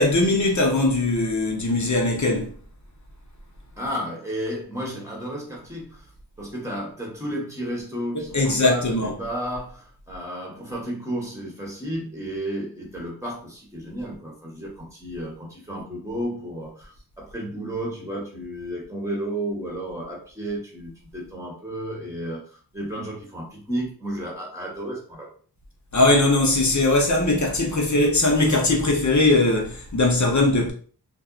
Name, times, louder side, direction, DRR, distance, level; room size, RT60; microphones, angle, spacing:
voice 1, 0.0-2.5 8.1-9.2 25.9-30.7, left 2 dB, 45° left, 0.7 m, -20 dB
voice 2, 3.8-6.0 6.4-16.9 17.2-25.3, right 1 dB, 5° right, 1.1 m, -32 dB
2.5 x 2.1 x 2.3 m
wide cardioid pair, 45°, 40 cm